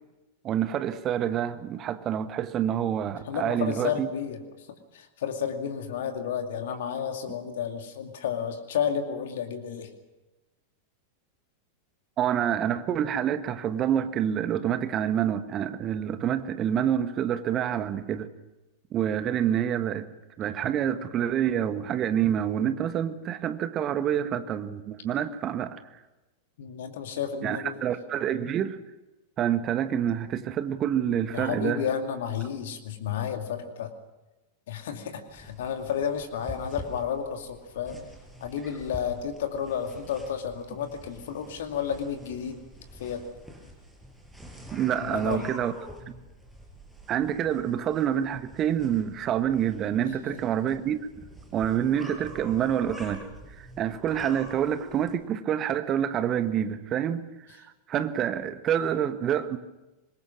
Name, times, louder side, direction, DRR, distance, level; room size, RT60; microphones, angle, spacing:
voice 1, 0.4-4.1 12.2-18.3 18.9-20.1 20.4-25.8 27.4-28.8 29.4-31.8 44.7-45.7 47.1-51.0 51.5-53.2 53.5-57.2 57.6-59.6, right 9 dB, 30° right, 1.5 m, -27 dB
voice 2, 3.3-4.7 4.9-9.9 26.6-27.8 31.3-33.9 34.7-38.0 38.4-42.6 42.9-43.2 45.0-45.5 50.1-50.4, left 8 dB, 60° left, 2.4 m, -32 dB
sound 1, 35.3-55.2, equal, 5° right, 5.8 m, -46 dB
25.5 x 21.5 x 6.3 m
figure-of-eight pair, 90°, 0 cm